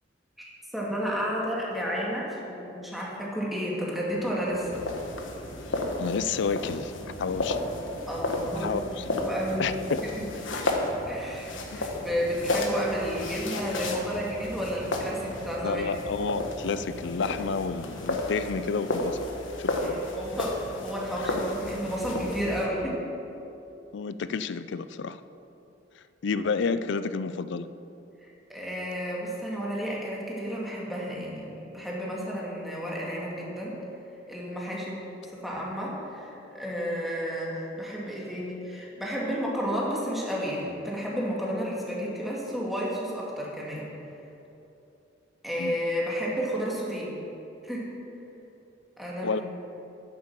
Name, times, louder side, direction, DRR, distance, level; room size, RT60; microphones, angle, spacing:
voice 1, 0.4-4.8 8.1-9.7 11.1-15.9 19.8-23.0 28.2-33.8 34.3-43.9 45.4-47.1 47.6-47.9 49.0-49.4, equal, ahead, -5 dB, 2.2 m, -32 dB
sound 1, 4.1-18.3, equal, 50° right, 2.6 m, -45 dB
sound 2, 4.7-22.7, left 1 dB, 85° left, 1.3 m, -33 dB
voice 2, 6.0-6.9 7.2-7.6 8.6-9.1 9.6-10.0 11.7-11.8 15.6-19.3 19.6-20.0 23.9-25.2 26.2-27.7 45.6-45.8 49.2-49.4, left 5 dB, 65° left, 13 dB, 0.4 m, -30 dB
9.7 x 7.7 x 7.3 m, 3.0 s
head